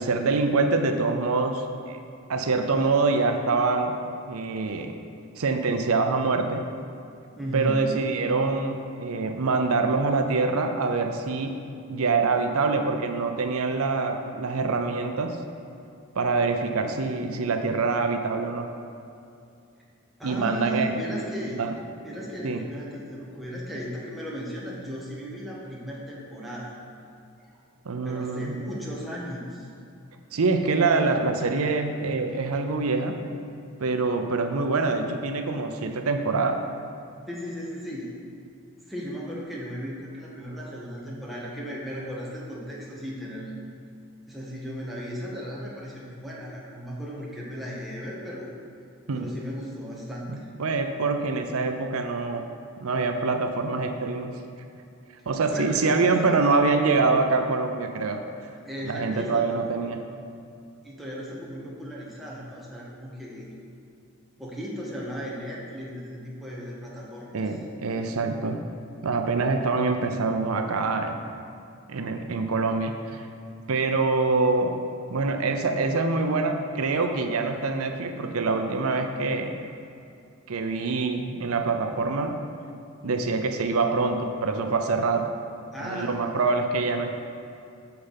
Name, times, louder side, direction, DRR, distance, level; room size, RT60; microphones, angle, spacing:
voice 1, 0.0-2.0 2.3-4.0 4.3-4.9 5.4-6.6 7.5-11.6 11.9-15.4 16.2-18.7 20.2-20.9 21.6-21.7 22.4-22.6 27.9-28.6 30.3-33.2 33.8-36.6 49.1-49.3 50.3-52.5 52.8-54.4 55.3-58.3 58.8-60.0 67.3-68.6 69.0-71.2 71.9-73.3 73.7-74.8 75.1-79.6 80.5-82.4 83.0-85.3 85.8-87.1, right 3 dB, 80° right, 6 dB, 0.6 m, -25 dB
voice 2, 7.4-8.0 20.2-21.6 22.0-26.8 27.5-27.6 28.0-29.7 37.3-38.1 38.9-43.6 44.3-48.5 49.1-50.5 55.5-56.4 58.6-59.8 60.8-63.5 64.4-67.6 75.3-75.6 83.1-83.6 85.7-86.4, equal, ahead, -6 dB, 1.4 m, -36 dB
7.0 x 6.6 x 5.7 m, 2.5 s
head